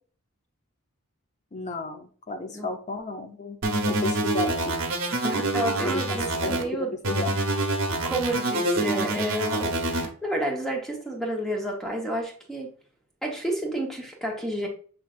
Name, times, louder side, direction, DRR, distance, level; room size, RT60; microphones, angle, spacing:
voice 1, 1.5-3.6 3.9-4.8 5.8-7.4, left 3 dB, 35° left, 6 dB, 0.6 m, -33 dB
sound 1, 3.6-6.6 7.0-10.1, right 2 dB, 60° right, 0.9 m, -26 dB
voice 2, 5.2-7.0 8.0-12.7 13.2-14.7, right 1 dB, ahead, 1 dB, 0.9 m, -30 dB
6.0 x 3.2 x 2.4 m, 0.43 s
head